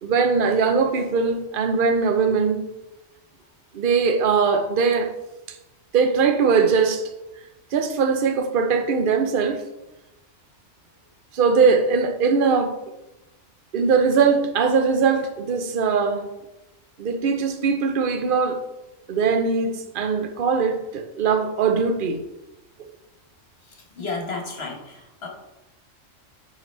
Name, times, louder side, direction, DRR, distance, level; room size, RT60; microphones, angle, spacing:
voice 1, 0.0-2.7 3.7-5.1 5.9-7.0 7.7-9.6 11.3-12.8 13.7-16.2 17.0-18.6 19.1-22.2, right 5 dB, 50° right, 0.8 m, -21 dB
voice 2, 24.0-25.3, left 3 dB, 50° left, 1.6 m, -32 dB
9.5 x 4.9 x 3.3 m
omnidirectional pair, 1.3 m